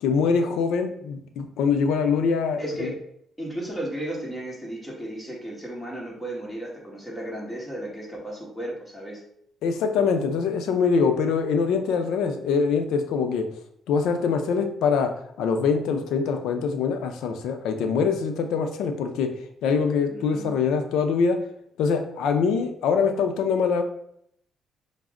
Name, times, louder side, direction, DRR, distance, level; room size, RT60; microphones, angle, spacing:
voice 1, 0.0-2.6 9.6-13.5 13.9-15.1 15.4-19.3 19.6-21.4 21.8-23.8, left 5 dB, 85° left, 6 dB, 0.5 m, -23 dB
voice 2, 2.6-3.0 3.4-9.2 20.1-20.6, right 1 dB, 5° left, -5 dB, 1.4 m, -34 dB
4.9 x 2.0 x 3.6 m, 0.71 s
cardioid pair, 90°, 0 cm